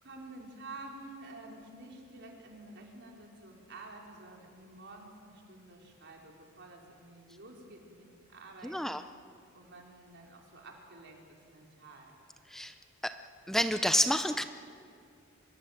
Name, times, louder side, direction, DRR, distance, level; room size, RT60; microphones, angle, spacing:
voice 1, 0.0-9.0 9.5-12.1, right 2 dB, 60° right, 0 dB, 4.2 m, -50 dB
voice 2, 8.6-9.0 12.5-12.7 13.0-13.2 13.5-14.4, equal, ahead, 9 dB, 0.5 m, -29 dB
24.5 x 22.0 x 7.8 m, 2.4 s
head